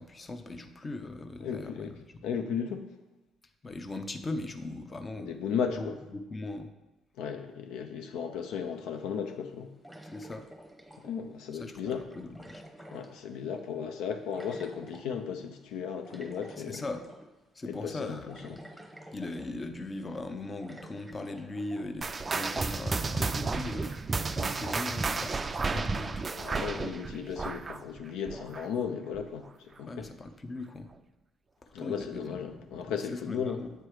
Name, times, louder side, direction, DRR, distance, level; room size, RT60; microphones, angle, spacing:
voice 1, 0.0-2.2 3.6-5.3 5.8-6.7 10.1-10.4 11.5-12.6 16.6-17.1 17.6-18.6 19.1-23.9 24.3-26.3 26.7-26.9 29.9-30.9 31.6-33.7, left 2 dB, 25° left, 8 dB, 0.6 m, -39 dB
voice 2, 1.4-1.9 2.2-2.9 5.2-6.0 7.2-9.7 11.0-12.1 12.9-16.9 17.7-18.6 26.3-30.1 31.7-33.6, left 7 dB, 80° left, 6 dB, 0.5 m, -35 dB
sound 1, 8.5-8.6 9.8-11.3 11.8-13.6 14.3-15.1 16.0-17.3 17.7-17.8 18.3-19.8 20.1-20.2 20.6-22.4, right 1 dB, 5° left, 1.0 m, -49 dB
sound 2, 22.0-28.9 29.1-29.5 30.0-30.1 30.9-31.0, right 4 dB, 30° right, 0.3 m, -32 dB
7.7 x 3.1 x 4.8 m, 1.0 s
supercardioid pair, 80°, 0 cm